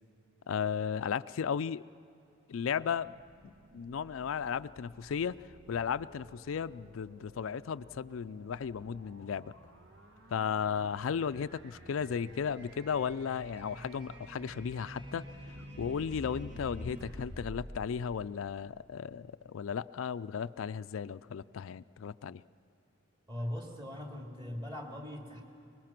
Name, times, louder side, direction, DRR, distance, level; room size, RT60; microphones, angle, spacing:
voice 1, 0.5-1.8 2.5-3.1 3.4-5.4 5.7-9.5 10.3-15.3 15.8-22.4, left 7 dB, 85° left, 14 dB, 0.4 m, -35 dB
sound 1, 2.8-18.9, equal, 60° right, 1.9 m, -50 dB
voice 2, 23.3-25.4, left 1 dB, 25° right, 1 dB, 2.7 m, -40 dB
24.0 x 21.0 x 5.9 m, 2.7 s
head